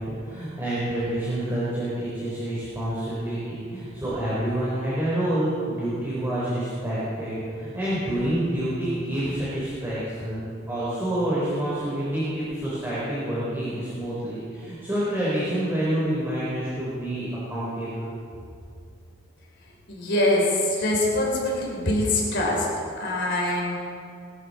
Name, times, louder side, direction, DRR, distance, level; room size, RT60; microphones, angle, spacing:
voice 1, 0.0-18.1, right 1 dB, 10° right, -9 dB, 4.1 m, -28 dB
voice 2, 19.9-22.7 23.0-23.8, left 1 dB, 60° left, -3 dB, 3.8 m, -24 dB
21.5 x 13.0 x 4.3 m, 2.4 s
head